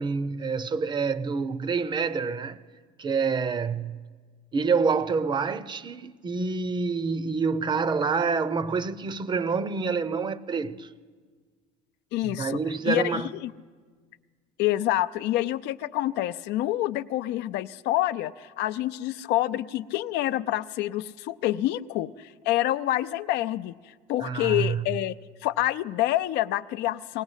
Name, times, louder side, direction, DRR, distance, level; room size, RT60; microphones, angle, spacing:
voice 1, 0.0-2.6 3.0-4.0 4.5-10.9 12.2-13.3 24.2-24.8, right 5 dB, 25° right, 0.7 m, -27 dB
voice 2, 12.1-12.6 12.8-13.5 14.6-25.2 25.4-27.2, left 14 dB, 65° left, 0.6 m, -27 dB
19.5 x 19.0 x 8.2 m
cardioid pair, 145°, 18 cm